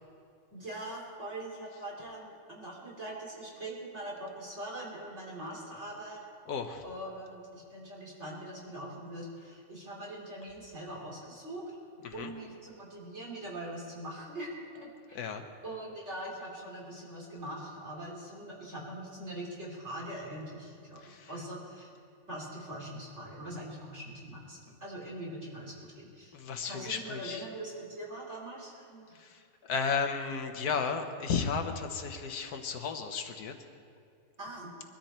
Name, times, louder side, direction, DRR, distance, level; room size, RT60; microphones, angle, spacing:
voice 1, 0.5-6.2 6.8-11.6 12.1-15.2 15.6-21.9 22.3-26.3 26.6-29.2 34.4-34.7, right 1 dB, 45° right, -4 dB, 3.7 m, -42 dB
voice 2, 6.5-6.8 12.0-12.3 15.1-15.4 21.0-21.3 26.3-27.4 29.1-29.4 29.7-33.5, left 5 dB, 80° left, 6 dB, 1.5 m, -34 dB
22.0 x 13.5 x 4.4 m, 2.3 s
omnidirectional pair, 1.6 m